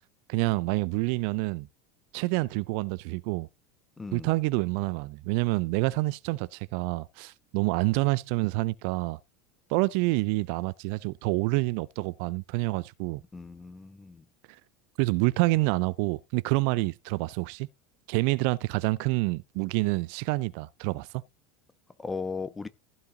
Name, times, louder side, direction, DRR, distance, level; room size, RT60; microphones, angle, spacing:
voice 1, 0.3-1.7 2.1-3.5 4.1-9.2 9.7-13.2 14.5-14.6 15.0-17.7 18.1-21.1, right 23 dB, 60° right, 0.5 m, -27 dB
voice 2, 4.0-4.3 13.3-14.2 22.0-22.7, left 4 dB, 15° left, 1.2 m, -36 dB
15.0 x 5.5 x 3.9 m
hypercardioid pair, 80°, 0 cm